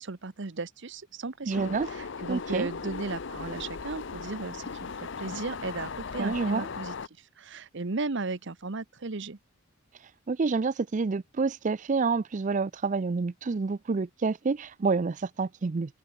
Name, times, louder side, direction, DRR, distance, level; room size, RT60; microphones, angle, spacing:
voice 1, 0.0-9.4, right 3 dB, 60° right, 1.0 m, -36 dB
sound 1, 1.5-7.1, left 5 dB, 60° left, 0.7 m, -38 dB
voice 2, 1.5-1.9 2.3-2.7 6.2-6.7 10.3-16.0, right 4 dB, 40° right, 0.4 m, -28 dB
head